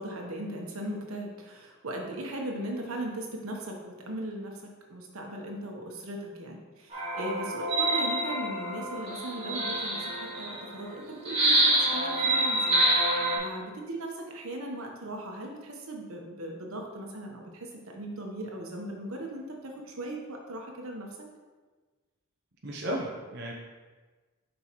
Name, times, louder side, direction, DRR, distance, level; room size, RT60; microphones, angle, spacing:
voice 1, 0.0-4.6 4.9-12.8 13.4-21.1, right 1 dB, 80° right, 1 dB, 1.1 m, -38 dB
sound 1, 6.9-10.6 11.2-13.4, right 1 dB, 25° right, 2.1 m, -26 dB
voice 2, 22.6-23.5, right 1 dB, 55° right, -3 dB, 0.8 m, -34 dB
7.5 x 5.4 x 3.1 m, 1.4 s
head